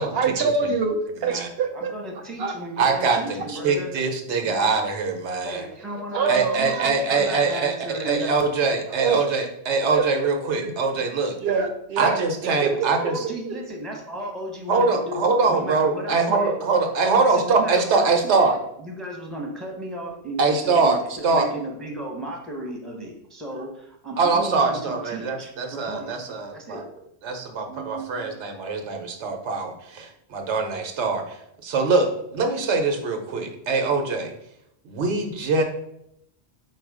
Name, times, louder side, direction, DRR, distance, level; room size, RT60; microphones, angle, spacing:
voice 1, 0.0-1.9 2.4-2.5 3.7-3.8 6.1-6.9 7.2-7.3 8.9-9.2 9.7-10.3 10.6-10.7 11.4-12.2 12.6-12.9 13.5-13.6 27.7-28.4, right 5 dB, 70° right, 4 dB, 0.8 m, -25 dB
voice 2, 1.7-3.9 4.4-4.7 5.4-8.5 12.7-16.6 17.1-26.1 26.5-26.8, right 1 dB, ahead, 0 dB, 0.7 m, -35 dB
voice 3, 2.8-5.6 6.3-11.4 12.0-13.2 14.7-18.5 20.4-21.0 21.2-21.5 24.2-26.8 27.2-34.3 34.8-35.6, right 4 dB, 90° right, 4 dB, 1.0 m, -23 dB
4.5 x 2.4 x 4.6 m, 0.77 s
omnidirectional pair, 1.1 m